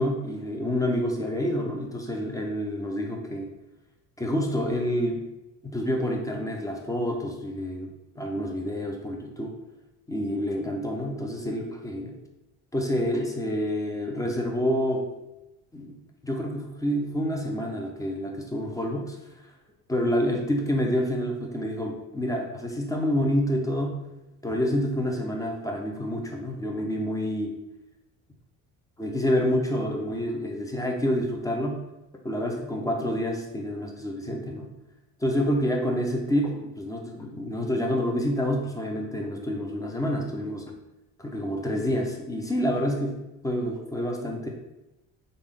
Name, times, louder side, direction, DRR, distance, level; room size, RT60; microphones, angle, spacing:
voice 1, 0.0-3.5 4.2-5.2 5.6-9.5 10.1-12.2 12.7-15.1 15.7-19.2 19.9-24.0 24.4-27.5 29.0-31.8 32.2-34.7 35.2-40.6 41.2-44.5, equal, 10° left, 1 dB, 0.6 m, -28 dB
3.5 x 2.6 x 3.4 m, 0.98 s
supercardioid pair, 90°, 37 cm